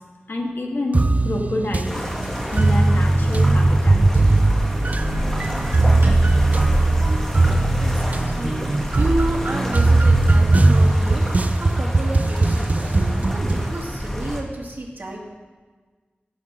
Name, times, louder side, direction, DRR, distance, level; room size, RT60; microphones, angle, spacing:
voice 1, 0.3-1.9 2.5-4.2, left 1 dB, 65° left, 1 dB, 1.6 m, -27 dB
sound 1, 0.9-13.7, right 2 dB, 40° right, 0.4 m, -19 dB
sound 2, 1.8-14.4, equal, 10° left, 1.7 m, -28 dB
sound 3, 4.2-12.2, right 1 dB, 85° right, 2.4 m, -42 dB
voice 2, 7.8-8.6 9.0-11.3 11.6-15.2, right 1 dB, 55° right, -2 dB, 2.1 m, -30 dB
16.0 x 7.1 x 3.7 m, 1.4 s
wide cardioid pair, 65°, 4 cm